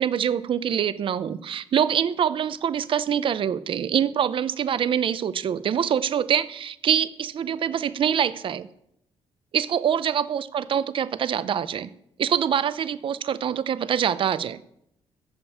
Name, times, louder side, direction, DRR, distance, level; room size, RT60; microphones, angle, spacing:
voice 1, 0.0-8.7 9.5-11.9 12.2-14.6, right 9 dB, 50° right, 15 dB, 0.6 m, -25 dB
14.5 x 5.3 x 8.3 m, 0.74 s
cardioid pair, 135°, 11 cm